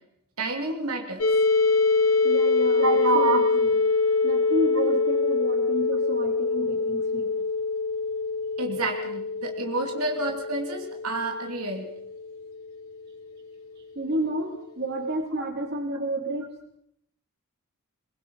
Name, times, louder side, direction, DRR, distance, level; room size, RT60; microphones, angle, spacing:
voice 1, 0.4-1.2 2.8-3.4 8.6-11.9 15.4-15.5, right 3 dB, 80° right, 3 dB, 2.8 m, -28 dB
sound 1, 1.2-12.9, left 4 dB, 75° left, 2.9 m, -25 dB
voice 2, 2.2-3.8 4.2-7.3 13.9-16.5, right 1 dB, 50° right, 4 dB, 3.2 m, -31 dB
22.0 x 21.5 x 5.5 m, 0.73 s
head